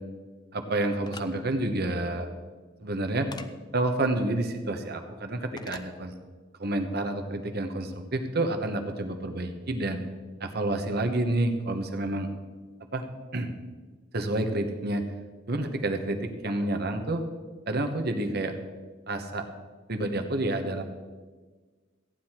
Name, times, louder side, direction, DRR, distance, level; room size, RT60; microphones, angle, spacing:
voice 1, 0.5-2.3 2.8-3.3 3.7-6.1 6.6-10.0 10.4-12.3 12.9-13.1 13.3-13.5 14.1-15.1 15.5-17.2 17.7-18.6 19.1-19.5 19.9-20.8, right 2 dB, 60° right, 6 dB, 1.2 m, -29 dB
sound 1, 1.0-1.3 3.3-3.5 5.6-5.9, left 4 dB, 25° left, 0.6 m, -42 dB
14.5 x 9.8 x 4.5 m, 1.4 s
head